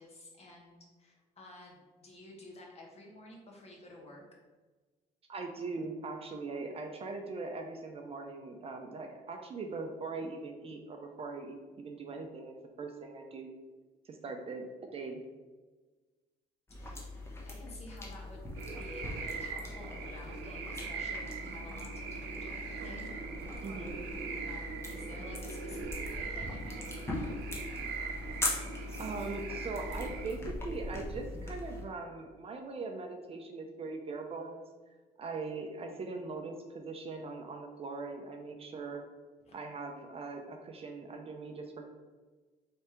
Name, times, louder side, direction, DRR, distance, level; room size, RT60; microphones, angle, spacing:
voice 1, 0.0-4.2 16.7-18.5 18.8-23.1 23.6-23.7 24.4-27.2 39.5-39.6, left 1 dB, 40° left, -1 dB, 1.3 m, -52 dB
voice 2, 5.3-13.5 14.0-14.6 14.9-15.2 23.6-24.0 29.0-34.6 35.2-39.0 39.5-41.8, right 3 dB, 35° right, 4 dB, 0.5 m, -41 dB
sound 1, 16.7-31.8, left 2 dB, 15° left, 0.9 m, -41 dB
sound 2, 18.6-30.3, right 5 dB, 85° right, 0.6 m, -41 dB
4.6 x 3.3 x 3.0 m, 1.3 s
cardioid pair, 110°, 17 cm